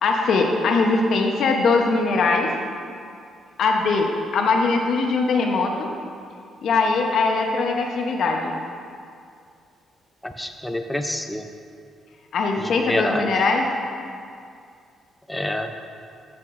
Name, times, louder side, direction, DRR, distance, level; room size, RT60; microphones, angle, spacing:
voice 1, 0.0-2.5 3.6-5.9 6.6-8.5 12.3-13.6, left 3 dB, 65° left, 2 dB, 0.9 m, -21 dB
voice 2, 10.2-11.5 12.6-13.3 15.3-15.7, left 1 dB, 5° left, 5 dB, 0.5 m, -27 dB
14.5 x 6.0 x 2.6 m, 2.4 s
cardioid pair, 90°, 0 cm